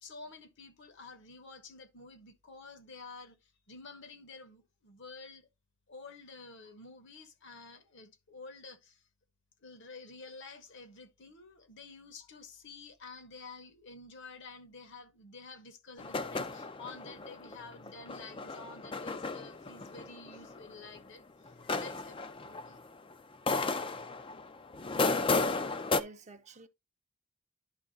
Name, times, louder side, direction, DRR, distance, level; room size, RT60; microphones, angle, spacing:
voice 1, 0.0-5.5 5.9-9.0 9.6-22.8, left 3 dB, 60° left, 1.2 m, -50 dB
sound 1, 16.0-21.0 21.5-23.1 23.5-26.0, left 3 dB, 25° left, 0.4 m, -34 dB
voice 2, 25.6-26.7, right 2 dB, 30° right, 0.7 m, -51 dB
10.5 x 3.6 x 3.8 m
head